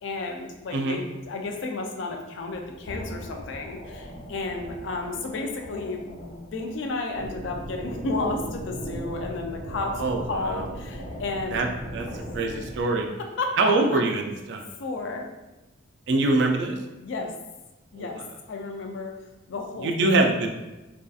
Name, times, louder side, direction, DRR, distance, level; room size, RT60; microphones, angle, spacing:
voice 1, 0.0-11.6 12.1-12.2 12.5-12.6 13.4-14.0 14.8-15.3 16.3-16.5 17.0-17.3 17.9-18.2 18.5-19.1 19.5-20.3, left 3 dB, 65° left, 2 dB, 0.4 m, -32 dB
voice 2, 0.7-1.0 9.9-10.6 11.5-11.7 11.9-12.1 12.3-13.1 13.6-14.2 14.5-14.6 16.1-16.8 18.0-18.2 19.8-20.5, right 2 dB, 60° right, 3 dB, 0.3 m, -24 dB
sound 1, 2.4-8.5 8.9-12.4, left 1 dB, 90° left, 1.2 m, -44 dB
sound 2, 7.1-12.8, equal, 80° right, 0.7 m, -37 dB
2.6 x 2.3 x 2.3 m, 1.0 s
head